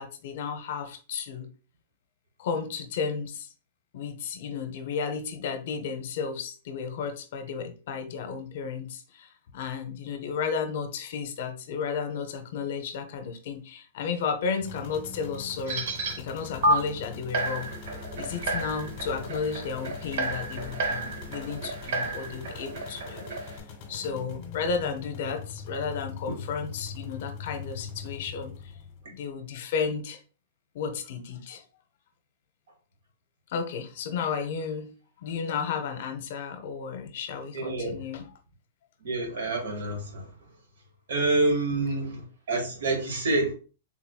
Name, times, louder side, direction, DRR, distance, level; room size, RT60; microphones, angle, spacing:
voice 1, 0.0-1.5 2.4-3.5 3.9-15.9 16.2-17.7 18.1-23.2 23.5-28.7 29.1-30.2 30.7-31.6 33.5-34.9 35.2-38.3, left 6 dB, 60° left, 0.7 m, -33 dB
sound 1, 14.6-29.1, left 6 dB, 40° left, 1.3 m, -42 dB
sound 2, 15.7-16.2 16.6-16.7 17.3-23.6, right 2 dB, 65° right, 0.8 m, -31 dB
voice 2, 37.5-38.0 39.0-40.3 41.1-43.5, right 2 dB, 85° right, 1.3 m, -27 dB
3.8 x 3.0 x 2.3 m
hypercardioid pair, 155°, 0 cm